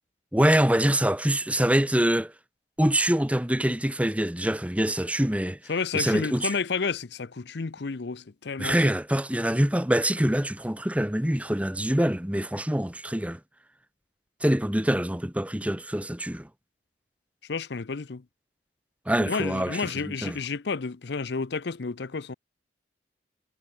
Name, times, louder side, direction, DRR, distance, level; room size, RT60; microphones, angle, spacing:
voice 1, 0.3-2.3 2.8-5.6 5.9-6.6 8.6-13.4 14.4-16.5 19.1-20.4, right 1 dB, 5° right, 1.2 m, -25 dB
voice 2, 5.7-8.8 17.5-18.2 19.2-22.3, left 4 dB, 60° left, 0.6 m, -31 dB
head